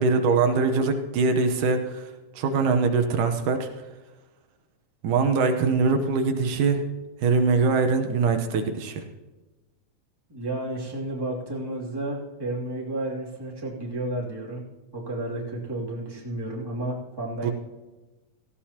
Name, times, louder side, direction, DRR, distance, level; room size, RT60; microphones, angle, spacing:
voice 1, 0.0-2.1 2.4-3.7 5.0-6.8 7.2-9.0 17.4-17.5, right 4 dB, 80° right, 5 dB, 2.5 m, -22 dB
voice 2, 10.3-14.7 14.9-17.5, right 1 dB, 10° right, -4 dB, 2.3 m, -32 dB
17.5 x 15.5 x 2.9 m, 1.2 s
omnidirectional pair, 3.6 m